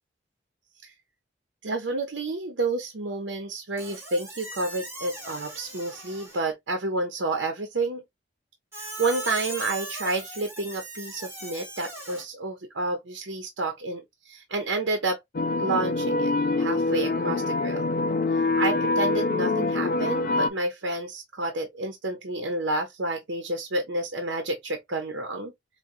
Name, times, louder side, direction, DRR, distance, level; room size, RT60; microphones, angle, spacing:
voice 1, 1.6-8.0 8.8-15.2 15.6-17.8 18.3-25.5, right 2 dB, 90° right, 0.8 m, -30 dB
Squeak, 3.8-6.5 8.7-12.2, right 1 dB, 15° right, 1.7 m, -39 dB
sound 1, 15.3-20.5, left 3 dB, 50° left, 0.4 m, -25 dB
4.8 x 2.3 x 2.6 m
head